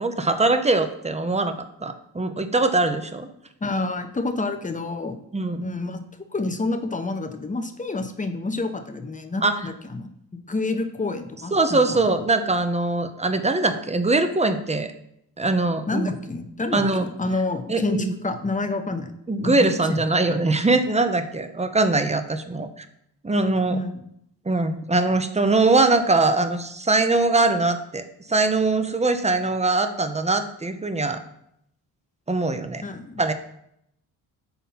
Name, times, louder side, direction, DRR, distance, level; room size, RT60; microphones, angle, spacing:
voice 1, 0.0-1.5 1.8-3.3 5.3-5.7 9.4-9.6 11.5-14.9 15.4-16.1 16.7-17.1 17.7-18.1 19.3-22.8 23.2-23.8 24.5-31.2 32.3-32.8 33.2-33.3, right 3 dB, 15° right, 9 dB, 0.7 m, -22 dB
voice 2, 3.6-5.2 5.6-6.0 6.3-12.0 15.9-19.1 19.4-20.0 23.7-24.0 32.8-33.3, left 3 dB, 15° left, 6 dB, 0.9 m, -28 dB
5.8 x 4.1 x 5.6 m, 0.76 s
supercardioid pair, 55°, 46 cm